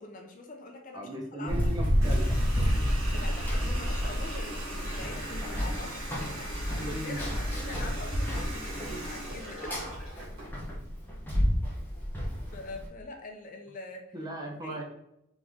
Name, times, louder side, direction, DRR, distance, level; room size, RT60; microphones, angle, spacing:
voice 1, 0.0-1.1 1.4-1.7 3.1-9.9 12.5-14.1 14.5-14.8, left 2 dB, 40° left, 3 dB, 0.6 m, -44 dB
voice 2, 0.9-2.3 2.6-2.7 6.8-7.5 14.1-14.8, right 1 dB, 20° right, 0 dB, 0.7 m, -37 dB
Run, 1.5-12.9, equal, 10° left, 0.9 m, -30 dB
Water tap faucet, 2.0-10.5, right 1 dB, 70° right, 1.5 m, -40 dB
3.9 x 3.0 x 3.5 m, 0.81 s
head